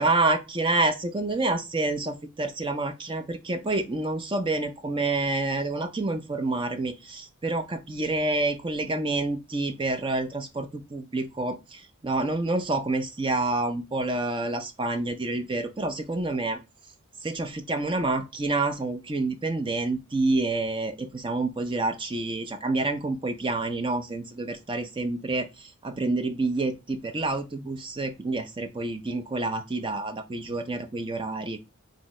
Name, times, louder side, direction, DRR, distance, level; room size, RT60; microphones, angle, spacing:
voice 1, 0.0-16.6 17.2-31.6, right 2 dB, 20° right, 0.4 m, -28 dB
2.9 x 2.7 x 4.2 m
head